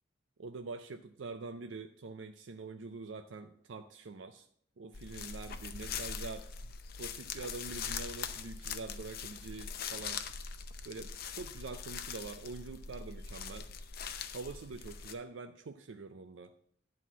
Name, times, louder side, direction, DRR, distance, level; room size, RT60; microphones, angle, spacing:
voice 1, 0.4-4.5 4.8-6.7 7.0-10.2 10.8-13.7 14.3-16.5, right 3 dB, 75° right, 7 dB, 0.5 m, -45 dB
sound 1, 4.9-15.1, left 6 dB, 50° left, 0.7 m, -42 dB
11.0 x 4.2 x 7.3 m, 0.66 s
head